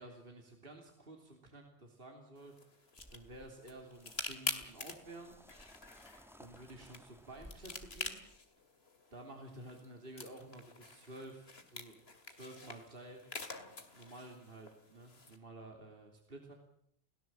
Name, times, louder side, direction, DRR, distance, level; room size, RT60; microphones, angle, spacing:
voice 1, 0.0-5.4 6.4-8.2 9.1-12.0 12.3-13.2 13.9-16.5, right 1 dB, 55° right, 2 dB, 3.4 m, -52 dB
sound 1, 2.4-15.4, left 3 dB, 60° left, 2.6 m, -47 dB
sound 2, 3.0-8.4, equal, ahead, 1.2 m, -59 dB
29.5 x 17.5 x 7.6 m, 0.71 s
omnidirectional pair, 1.2 m